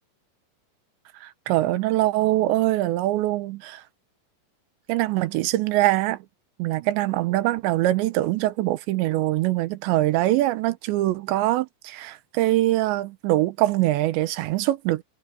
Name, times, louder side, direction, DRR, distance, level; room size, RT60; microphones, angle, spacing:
voice 1, 1.2-3.8 4.9-6.2 6.6-15.0, right 16 dB, 85° right, 3.2 m, -23 dB
omnidirectional pair, 5.2 m